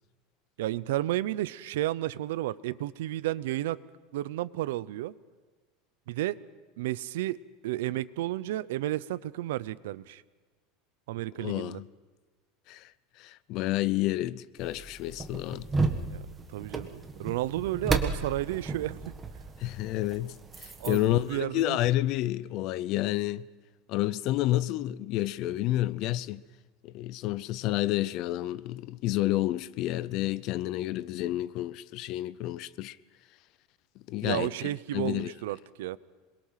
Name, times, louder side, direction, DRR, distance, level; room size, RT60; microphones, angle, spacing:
voice 1, 0.6-3.8 4.1-5.1 6.1-6.4 6.8-7.4 7.6-10.2 11.1-11.8 16.1-16.2 16.5-19.0 20.8-21.8 34.2-36.0, right 15 dB, 85° right, 0.7 m, -32 dB
voice 2, 11.4-11.8 12.7-12.9 13.2-15.7 19.6-23.5 23.9-26.4 26.8-33.0 34.1-35.3, left 15 dB, 45° left, 0.6 m, -30 dB
sound 1, 14.6-21.4, right 4 dB, 15° right, 1.5 m, -34 dB
27.5 x 22.0 x 5.8 m
supercardioid pair, 165°, 0 cm